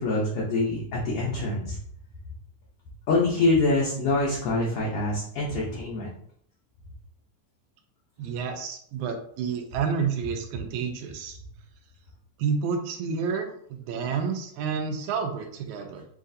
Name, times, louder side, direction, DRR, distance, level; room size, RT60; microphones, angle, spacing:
voice 1, 0.0-1.8 3.1-6.1, left 2 dB, 75° left, -5 dB, 1.3 m, -25 dB
voice 2, 8.2-11.4 12.4-16.1, right 6 dB, 80° right, 4 dB, 1.9 m, -30 dB
6.2 x 2.4 x 2.7 m, 0.64 s
omnidirectional pair, 3.5 m